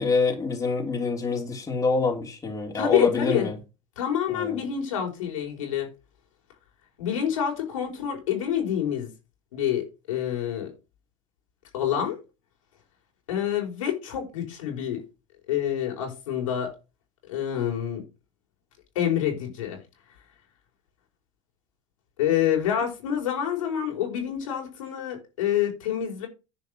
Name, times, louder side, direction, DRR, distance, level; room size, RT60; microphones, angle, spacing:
voice 1, 0.0-3.5 4.3-4.6, left 4 dB, 20° left, 3.3 m, -26 dB
voice 2, 2.7-3.5 4.0-5.9 7.0-9.1 9.5-10.7 11.7-12.2 13.3-15.0 15.5-16.7 17.3-18.0 18.9-19.8 22.2-26.3, left 10 dB, 85° left, 4.5 m, -27 dB
10.5 x 5.0 x 6.2 m
supercardioid pair, 115°, 16 cm